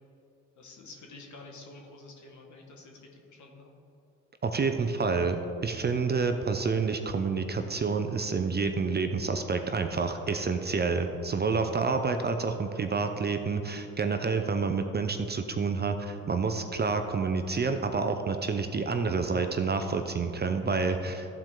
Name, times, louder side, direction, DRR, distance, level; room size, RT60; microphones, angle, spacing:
voice 1, 0.6-3.7 21.0-21.3, left 3 dB, 50° left, 1 dB, 1.7 m, -49 dB
voice 2, 4.4-21.3, right 4 dB, 30° right, 7 dB, 0.6 m, -28 dB
13.0 x 4.4 x 3.7 m, 2.8 s
hypercardioid pair, 50°, 36 cm